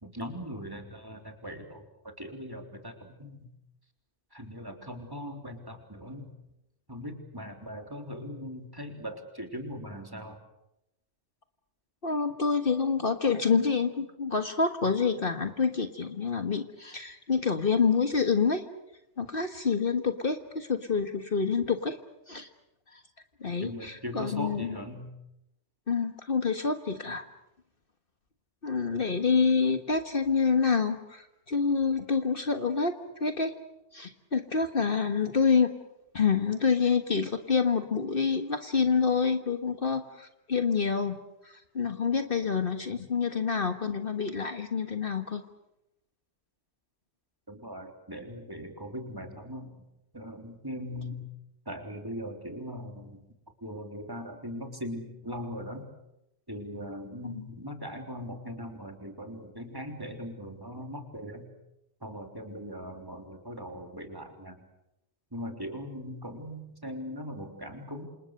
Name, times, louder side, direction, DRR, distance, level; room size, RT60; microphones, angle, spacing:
voice 1, 0.0-3.5 4.3-6.3 6.9-10.4 23.6-25.1 47.5-49.8 50.1-51.2 51.7-53.2 53.6-55.9 56.5-61.5 62.0-64.6 65.3-68.0, equal, 20° right, 3 dB, 3.6 m, -40 dB
voice 2, 12.0-18.6 19.2-22.0 22.3-22.5 22.9-23.0 23.4-24.7 25.9-27.3 28.6-32.9 33.2-33.5 33.9-35.7 36.1-41.2 41.4-45.4 57.2-57.5, left 5 dB, 50° left, 7 dB, 1.7 m, -27 dB
28.0 x 27.5 x 6.6 m, 0.86 s
omnidirectional pair, 1.2 m